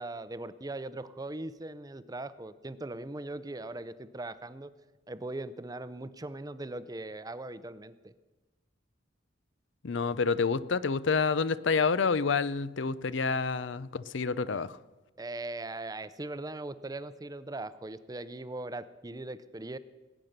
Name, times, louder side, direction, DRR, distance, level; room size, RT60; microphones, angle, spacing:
voice 1, 0.0-4.7 5.1-8.1 15.2-19.8, right 2 dB, 20° right, 15 dB, 0.6 m, -40 dB
voice 2, 9.8-14.8, left 5 dB, 65° left, 16 dB, 0.6 m, -28 dB
19.5 x 9.1 x 6.6 m, 1.2 s
head